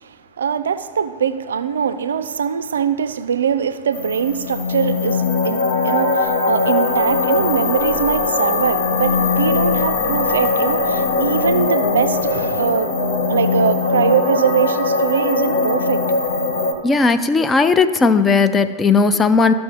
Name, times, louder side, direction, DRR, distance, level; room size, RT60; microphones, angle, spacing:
voice 1, 0.0-12.9 13.3-16.0, right 7 dB, 65° right, 0.4 m, -22 dB
sound 1, 3.9-16.7, left 3 dB, 60° left, 0.8 m, -20 dB
voice 2, 16.8-19.5, left 4 dB, 15° left, 0.3 m, -16 dB
13.5 x 6.0 x 2.4 m
figure-of-eight pair, 90°, 0 cm